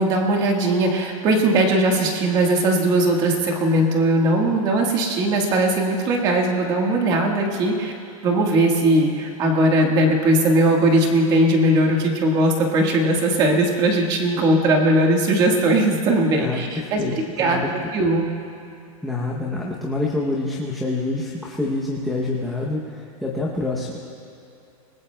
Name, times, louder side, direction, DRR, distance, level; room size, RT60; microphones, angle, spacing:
voice 1, 0.0-7.9 8.2-18.3, right 1 dB, 20° right, 1 dB, 1.5 m, -19 dB
voice 2, 16.3-17.7 19.0-24.0, left 2 dB, ahead, -4 dB, 0.7 m, -27 dB
25.5 x 20.0 x 2.2 m, 2.7 s
supercardioid pair, 170°, 19 cm